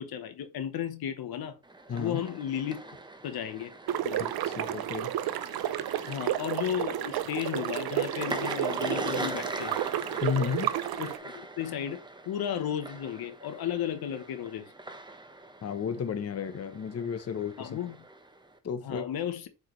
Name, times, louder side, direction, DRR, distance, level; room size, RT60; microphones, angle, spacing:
voice 1, 0.0-1.6 2.0-2.8 3.2-3.7 4.0-4.2 6.1-9.8 11.0-12.0 12.2-14.7 17.6-18.0 18.8-19.5, left 9 dB, 80° left, 1.1 m, -34 dB
sound 1, 1.6-18.6, right 2 dB, 10° right, 1.1 m, -42 dB
voice 2, 1.9-2.2 4.2-5.1 10.2-10.7 15.6-17.8 18.6-19.1, left 7 dB, 45° left, 0.8 m, -33 dB
sound 2, 3.9-11.2, right 12 dB, 90° right, 0.7 m, -32 dB
7.9 x 4.8 x 3.2 m
cardioid pair, 95°, 36 cm